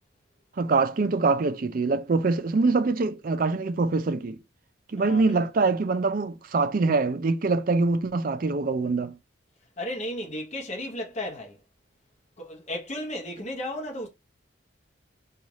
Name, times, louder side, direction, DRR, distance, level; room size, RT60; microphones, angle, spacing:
voice 1, 0.6-4.4 4.9-9.2, right 3 dB, 45° right, 0.4 m, -24 dB
voice 2, 5.0-5.4 9.8-11.6 12.4-14.1, left 1 dB, 35° left, 0.8 m, -34 dB
3.2 x 2.4 x 4.0 m
head